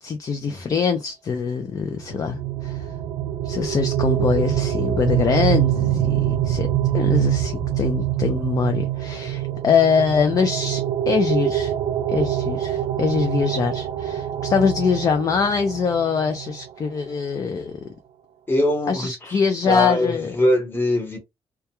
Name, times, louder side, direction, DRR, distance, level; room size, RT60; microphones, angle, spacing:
voice 1, 0.0-2.9 3.4-6.7 6.9-11.7 12.1-17.8 18.9-20.4, left 6 dB, 35° left, 0.4 m, -23 dB
sound 1, 1.9-16.6, right 12 dB, 80° right, 0.4 m, -25 dB
voice 2, 18.5-19.4 19.6-21.2, left 1 dB, 20° left, 0.9 m, -22 dB
2.2 x 2.2 x 2.8 m
wide cardioid pair, 155°, 10 cm